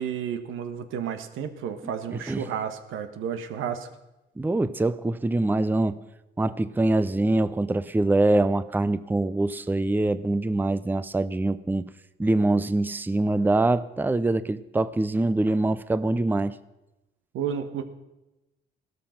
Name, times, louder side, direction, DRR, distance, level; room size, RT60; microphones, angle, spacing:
voice 1, 0.0-3.9 17.3-17.8, right 8 dB, 85° right, 9 dB, 1.4 m, -31 dB
voice 2, 2.1-2.4 4.4-6.0 6.4-11.9 12.2-16.6, right 2 dB, 10° right, 15 dB, 0.6 m, -24 dB
15.5 x 13.0 x 5.9 m, 0.98 s
cardioid pair, 90°, 20 cm